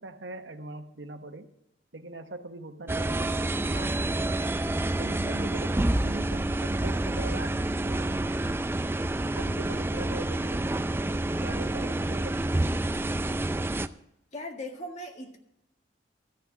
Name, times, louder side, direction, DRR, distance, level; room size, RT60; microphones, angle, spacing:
voice 1, 0.0-1.5 1.9-4.3 5.0-8.3 9.3-12.6, right 2 dB, 80° right, 1.2 m, -42 dB
sound 1, 2.9-13.9, right 1 dB, 15° right, 0.4 m, -28 dB
voice 2, 14.3-15.4, left 1 dB, 40° left, 1.8 m, -38 dB
13.5 x 5.9 x 8.4 m
head